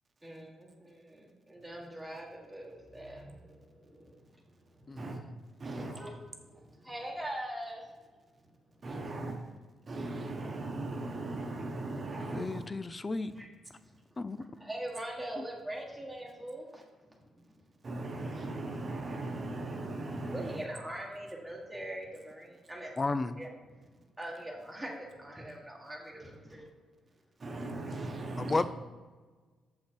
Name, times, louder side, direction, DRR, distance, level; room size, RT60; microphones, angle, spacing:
voice 1, 0.2-4.1 4.9-5.0 5.6-7.9 13.3-13.5 14.4-16.8 17.1-17.2 20.3-23.5 24.2-26.6, right 1 dB, 5° right, -4 dB, 1.6 m, -42 dB
voice 2, 5.6-5.9 8.8-9.3 9.9-12.6 17.8-20.6 27.4-28.6, right 2 dB, 40° right, 3 dB, 1.1 m, -38 dB
voice 3, 12.3-13.3 14.2-14.4 15.4-15.5 23.0-23.4 28.4-28.7, left 3 dB, 25° left, 13 dB, 0.4 m, -32 dB
7.4 x 5.7 x 4.6 m, 1.4 s
cardioid pair, 100°, 0 cm